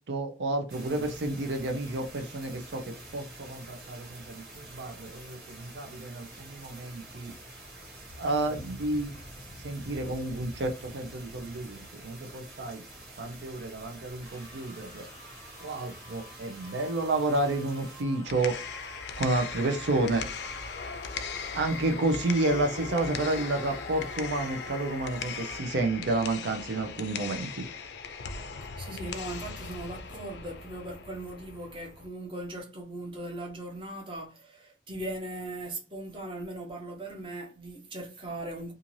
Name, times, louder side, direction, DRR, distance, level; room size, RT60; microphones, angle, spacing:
voice 1, 0.1-7.3 8.2-9.1 9.6-12.8 13.2-15.1 15.6-18.6 19.2-20.2 21.5-27.7, right 2 dB, 80° right, 0.5 m, -30 dB
sound 1, 0.7-18.0, right 1 dB, 60° right, 1.3 m, -47 dB
sound 2, 14.2-25.6, equal, 15° left, 0.8 m, -49 dB
sound 3, 18.1-32.1, left 5 dB, 70° left, 0.4 m, -39 dB
voice 2, 28.8-38.7, right 1 dB, 30° right, 0.8 m, -39 dB
2.6 x 2.4 x 3.0 m
head